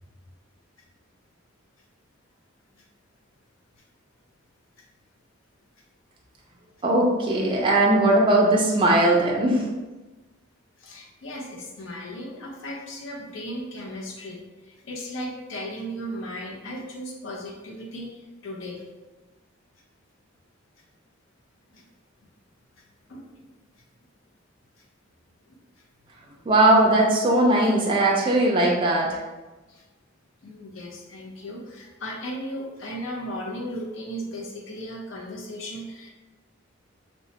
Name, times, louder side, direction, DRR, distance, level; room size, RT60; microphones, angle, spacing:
voice 1, 6.8-9.7 26.5-29.2, right 1 dB, 25° right, -2 dB, 0.3 m, -19 dB
voice 2, 10.8-18.8 21.7-21.9 23.1-23.5 25.5-25.6 29.7-29.8 30.4-36.1, equal, 75° left, -1 dB, 0.6 m, -36 dB
2.9 x 2.1 x 2.8 m, 1.2 s
head